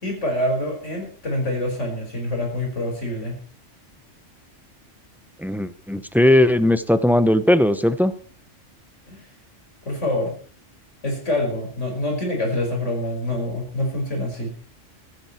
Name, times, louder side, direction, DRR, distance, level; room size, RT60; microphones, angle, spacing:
voice 1, 0.0-3.4 9.1-9.2 9.9-10.3 11.0-14.5, left 1 dB, 75° left, 1 dB, 5.5 m, -26 dB
voice 2, 5.4-8.1, left 1 dB, ahead, 12 dB, 0.7 m, -18 dB
15.5 x 13.5 x 4.4 m, 0.41 s
omnidirectional pair, 1.3 m